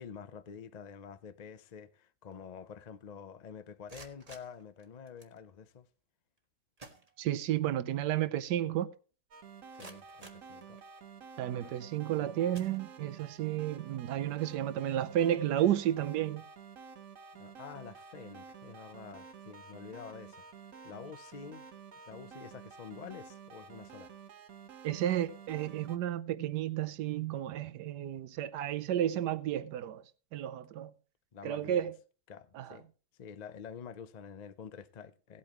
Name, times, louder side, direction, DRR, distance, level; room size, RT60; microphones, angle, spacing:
voice 1, 0.0-5.9 9.7-10.8 11.6-11.8 17.3-20.4 20.8-21.6 22.0-24.1 31.3-31.9 32.3-32.9 33.2-35.4, left 7 dB, 70° left, 0.4 m, -48 dB
sound 1, 3.7-5.4 6.4-6.5 6.8-7.7 8.0-8.1 8.7-8.8 9.3-11.2 11.8-12.1 12.5-13.3, right 2 dB, 25° right, 1.3 m, -55 dB
voice 2, 7.2-8.9 11.4-16.4 24.8-30.0 30.3-30.9 31.4-32.0 32.5-32.8, right 11 dB, 90° right, 1.3 m, -32 dB
sound 2, 9.3-26.0, right 6 dB, 55° right, 1.3 m, -51 dB
17.5 x 8.5 x 3.0 m
omnidirectional pair, 1.8 m